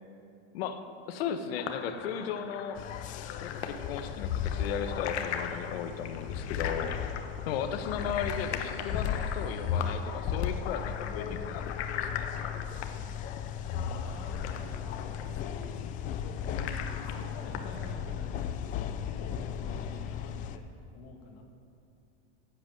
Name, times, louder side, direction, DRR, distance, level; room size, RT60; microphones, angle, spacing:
voice 1, 1.1-2.8 3.4-7.0 7.5-12.3, left 7 dB, 65° left, 8 dB, 1.2 m, -36 dB
sound 1, 1.6-18.5, left 8 dB, 85° left, 1.2 m, -41 dB
sound 2, 2.8-20.6, left 8 dB, 25° left, 0.4 m, -36 dB
voice 2, 7.4-8.0 13.8-14.8 15.1-15.8 16.1-18.7 19.0-20.7 20.9-21.4, left 3 dB, 45° left, 1 dB, 2.2 m, -48 dB
13.5 x 8.3 x 7.6 m, 2.6 s
supercardioid pair, 155°, 33 cm